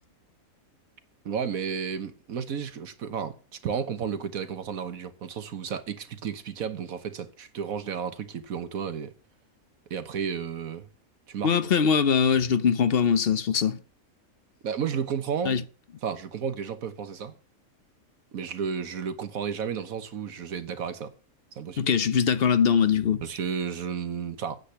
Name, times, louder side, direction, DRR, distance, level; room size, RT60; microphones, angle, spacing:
voice 1, 1.2-3.3 3.6-9.1 9.9-10.9 11.3-11.6 14.6-15.6 16.0-17.3 18.3-21.1 21.5-21.9 23.2-24.6, right 7 dB, 75° right, 1.5 m, -32 dB
voice 2, 11.4-13.8 15.4-15.6 21.8-23.2, left 7 dB, 50° left, 0.8 m, -22 dB
9.5 x 8.3 x 5.7 m
omnidirectional pair, 1.5 m